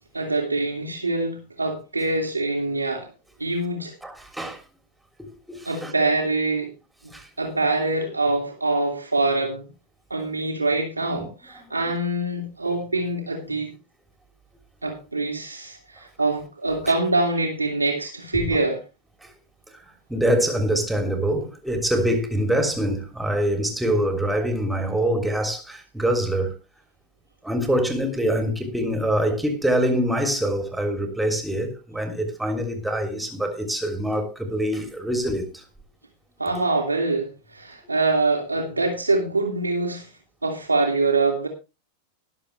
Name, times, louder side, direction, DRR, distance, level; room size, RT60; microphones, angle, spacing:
voice 1, 0.1-3.1 3.4-3.9 5.7-6.7 7.4-9.7 10.1-13.7 14.8-18.8 36.4-40.1 40.4-41.5, right 2 dB, 80° right, 2.4 m, -24 dB
voice 2, 4.0-4.6 5.5-5.9 7.1-7.3 11.1-11.3 18.5-18.6 19.2-19.3 19.7-26.6 27.4-35.6, right 1 dB, 5° right, 3.2 m, -25 dB
21.0 x 7.5 x 3.3 m
figure-of-eight pair, 90°, 0 cm